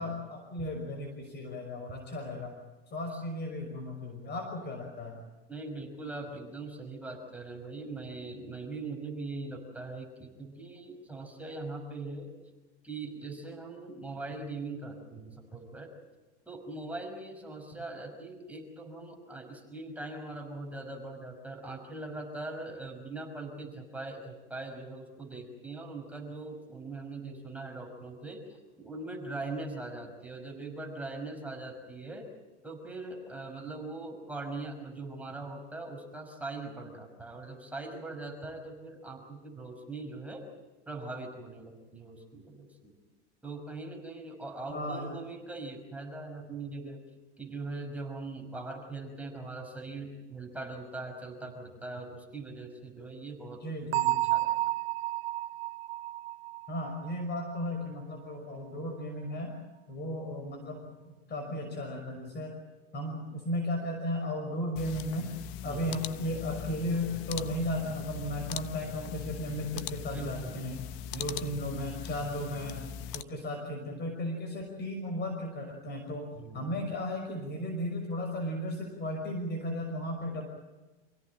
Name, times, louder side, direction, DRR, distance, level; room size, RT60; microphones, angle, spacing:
voice 1, 0.0-2.6 2.9-5.2 17.7-17.8 44.7-45.2 53.6-54.2 56.7-59.5 59.9-62.6 62.9-65.3 65.6-70.8 71.1-72.8 73.1-80.4, left 1 dB, 30° left, 3 dB, 5.9 m, -35 dB
voice 2, 5.5-12.3 12.8-15.9 16.5-32.3 32.6-40.4 40.9-42.9 43.4-47.0 47.4-53.6 54.3-54.5 65.6-66.1 70.1-70.5 71.1-71.4 76.4-76.8, right 3 dB, 5° right, 2 dB, 5.7 m, -41 dB
Bell, 53.9-57.6, right 16 dB, 65° right, 0.8 m, -31 dB
sound 1, 64.8-73.2, left 10 dB, 55° left, 1.2 m, -41 dB
28.0 x 17.0 x 9.0 m, 1.2 s
hypercardioid pair, 100°, 32 cm